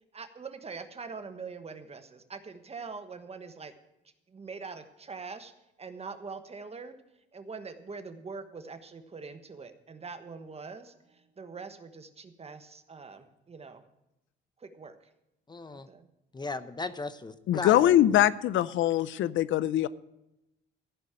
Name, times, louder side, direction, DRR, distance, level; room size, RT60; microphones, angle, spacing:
voice 1, 0.1-3.7 4.3-5.5 5.8-7.0 7.3-13.8 14.6-15.0 15.7-16.1, right 4 dB, 30° right, 8 dB, 1.2 m, -43 dB
voice 2, 15.5-15.9 16.3-18.2, left 3 dB, 20° left, 12 dB, 0.8 m, -37 dB
voice 3, 17.5-19.9, left 12 dB, 75° left, 17 dB, 0.5 m, -23 dB
14.5 x 5.3 x 8.7 m, 0.89 s
cardioid pair, 90°, 20 cm